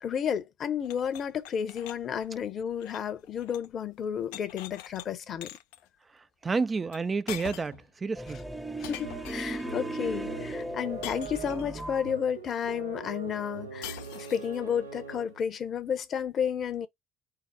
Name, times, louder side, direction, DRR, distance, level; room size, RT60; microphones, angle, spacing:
voice 1, 0.0-5.5 8.8-16.9, left 8 dB, 45° left, 0.9 m, -32 dB
sound 1, 0.8-3.7 4.0-5.1 5.4-5.8 6.9-7.0 7.3-7.9 8.8-9.7 11.0-11.8 13.8-14.6, left 13 dB, 70° left, 0.4 m, -44 dB
voice 2, 6.1-8.4, right 4 dB, 25° right, 0.3 m, -30 dB
sound 2, 8.2-12.1, right 1 dB, 5° right, 0.8 m, -37 dB
sound 3, 9.0-15.5, right 4 dB, 85° right, 0.6 m, -43 dB
4.8 x 2.0 x 4.4 m
figure-of-eight pair, 60°, 0 cm